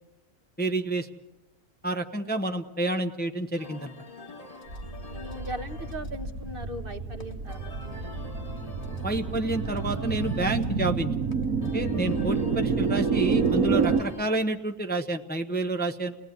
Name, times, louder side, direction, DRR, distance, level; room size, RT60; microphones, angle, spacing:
voice 1, 0.6-1.1 1.8-3.9 9.0-11.1 11.7-16.2, right 2 dB, 10° left, 5 dB, 0.9 m, -29 dB
sound 1, 3.6-14.4, left 2 dB, 25° left, 1.8 m, -47 dB
sound 2, 4.7-14.0, right 5 dB, 85° right, 1.7 m, -28 dB
voice 2, 5.1-8.2, right 1 dB, 40° right, 5 dB, 1.4 m, -39 dB
30.0 x 18.5 x 9.5 m, 1.0 s
omnidirectional pair, 1.4 m